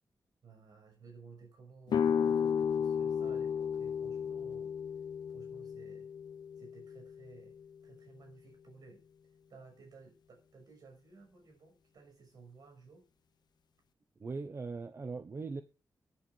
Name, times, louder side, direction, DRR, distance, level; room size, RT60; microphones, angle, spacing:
voice 1, 0.4-4.7 5.3-6.1 6.6-7.6 7.8-9.0 9.5-13.1, right 4 dB, 70° right, 6.5 m, -56 dB
sound 1, 1.9-7.6, left 7 dB, 85° left, 0.8 m, -33 dB
voice 2, 14.2-15.6, right 4 dB, 35° right, 0.9 m, -40 dB
10.5 x 10.5 x 6.2 m
wide cardioid pair, 175°, 7 cm